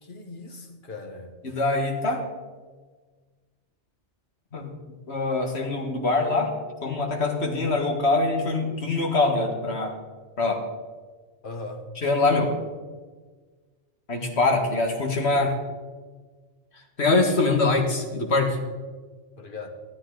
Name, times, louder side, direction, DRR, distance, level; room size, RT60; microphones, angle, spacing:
voice 1, 0.0-1.4 11.4-11.9 19.4-19.7, left 3 dB, 45° left, 5 dB, 1.5 m, -39 dB
voice 2, 1.4-2.2 4.5-4.7 5.1-6.5 6.8-10.0 10.4-10.6 12.0-12.5 14.1-15.6 17.0-18.6, left 3 dB, 65° left, 2 dB, 2.0 m, -23 dB
14.0 x 12.5 x 3.9 m, 1.4 s
omnidirectional pair, 1.2 m